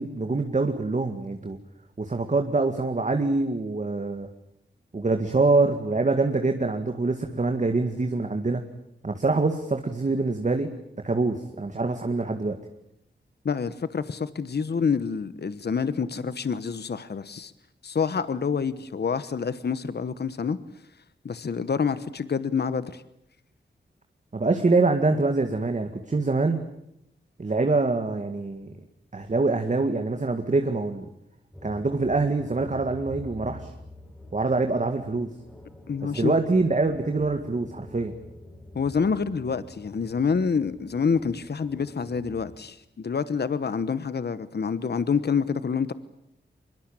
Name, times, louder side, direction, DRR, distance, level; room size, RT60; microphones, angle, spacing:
voice 1, 0.0-1.6 2.0-4.3 4.9-8.6 9.0-10.7 11.0-12.6 24.3-26.6 27.4-28.7 29.1-31.1 31.6-33.7 34.3-35.3 36.0-38.1, right 3 dB, 40° right, 5 dB, 2.1 m, -25 dB
voice 2, 13.4-17.5 17.8-20.6 21.2-23.0 35.9-36.3 38.7-45.9, left 5 dB, 60° left, 14 dB, 1.1 m, -27 dB
sound 1, 31.5-42.6, left 1 dB, 5° left, 5.3 m, -46 dB
24.0 x 22.5 x 9.0 m, 0.79 s
wide cardioid pair, 80°, 19 cm